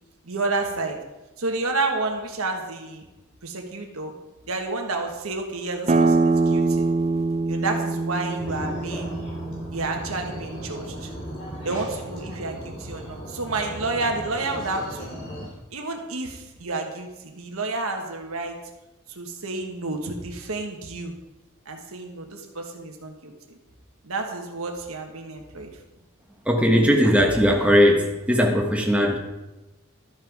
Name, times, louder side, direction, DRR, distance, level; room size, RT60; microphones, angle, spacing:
voice 1, 0.2-1.0 1.4-3.0 3.4-4.1 4.5-6.9 7.4-9.2 9.7-11.1 11.6-15.2 15.7-18.6 19.1-21.1 21.6-23.6 24.0-25.7, right 3 dB, 80° right, 3 dB, 1.3 m, -30 dB
sound 1, 5.9-11.2, right 3 dB, 30° right, 0.4 m, -24 dB
sound 2, 8.4-15.5, equal, 40° left, 3.4 m, -36 dB
voice 2, 26.5-29.2, equal, 5° right, 1 dB, 1.2 m, -19 dB
12.0 x 5.8 x 4.7 m, 1.0 s
head